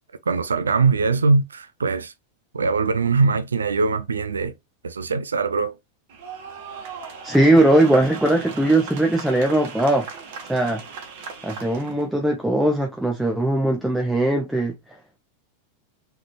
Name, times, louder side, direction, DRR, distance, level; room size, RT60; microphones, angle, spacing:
voice 1, 0.3-2.1 2.5-4.5 4.8-5.8, right 4 dB, 85° right, 0.4 m, -21 dB
sound 1, 6.1-12.0, right 5 dB, 55° right, 1.3 m, -37 dB
voice 2, 7.2-10.2 10.5-10.8 11.4-14.7, right 1 dB, 5° right, 0.9 m, -19 dB
3.9 x 3.4 x 3.0 m
hypercardioid pair, 95°, 0 cm